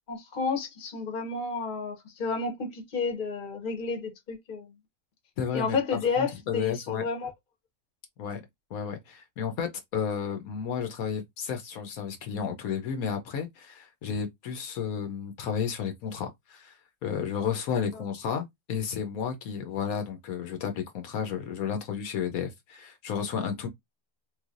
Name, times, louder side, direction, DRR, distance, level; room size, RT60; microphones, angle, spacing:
voice 1, 0.1-4.7 5.5-7.3 17.9-18.0, left 4 dB, 40° left, 1.0 m, -31 dB
voice 2, 5.4-5.8 6.2-7.0 8.2-8.4 8.7-16.7 17.0-23.7, left 7 dB, 75° left, 1.1 m, -32 dB
3.2 x 2.7 x 2.4 m
omnidirectional pair, 1.5 m